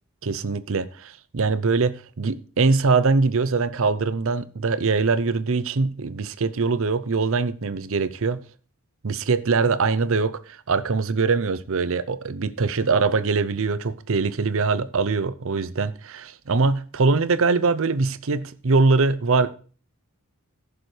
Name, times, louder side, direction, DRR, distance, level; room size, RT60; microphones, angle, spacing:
voice 1, 0.2-8.4 9.0-19.5, right 4 dB, 65° right, 0.7 m, -22 dB
15.5 x 6.8 x 3.3 m
head